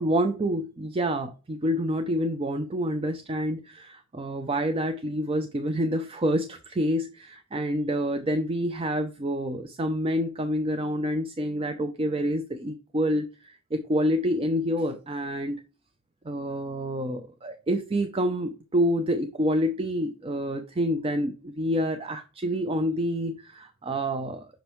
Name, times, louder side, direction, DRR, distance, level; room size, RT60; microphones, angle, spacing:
voice 1, 0.0-15.6 16.2-24.5, equal, 25° right, 6 dB, 0.5 m, -28 dB
6.1 x 5.1 x 3.0 m, 0.33 s
head